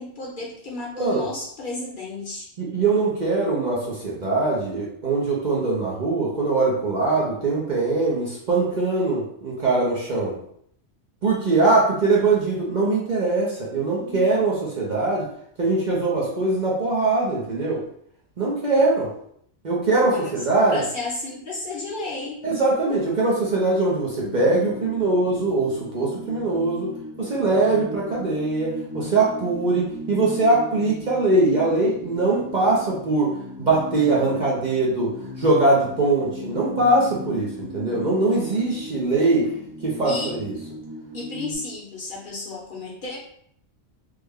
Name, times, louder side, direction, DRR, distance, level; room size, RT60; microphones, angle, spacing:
voice 1, 0.0-2.5 13.7-14.3 19.7-20.4 20.7-22.4 38.4-38.5 40.0-40.3 41.1-43.2, left 2 dB, 50° left, -3 dB, 0.9 m, -33 dB
voice 2, 2.6-10.4 11.2-15.3 15.6-17.8 18.4-19.1 19.6-20.8 22.4-26.9 27.2-33.3 33.6-35.1 35.4-39.5 39.8-40.5, right 3 dB, 50° right, -5 dB, 0.7 m, -22 dB
sound 1, 24.2-41.5, left 1 dB, 70° right, 1.6 m, -37 dB
3.2 x 2.1 x 3.5 m, 0.68 s
omnidirectional pair, 1.2 m